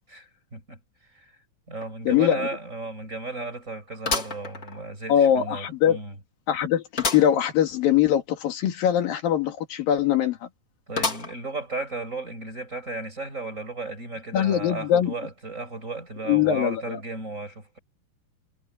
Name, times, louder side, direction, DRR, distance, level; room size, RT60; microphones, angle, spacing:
voice 1, 0.1-0.8 1.1-1.3 1.7-6.2 10.9-17.8, right 3 dB, 20° right, 5.8 m, -35 dB
sound 1, 1.8-1.9 2.3-2.4 4.0-5.1 5.6-5.7 7.0-7.4 7.8-7.9 8.1-8.2 11.0-11.6 12.2-12.3 13.2-13.3, left 4 dB, 30° left, 2.6 m, -29 dB
voice 2, 2.1-2.5 5.1-6.0 6.5-10.4 14.3-15.1 16.3-17.0, left 10 dB, 85° left, 3.7 m, -22 dB
omnidirectional pair, 3.9 m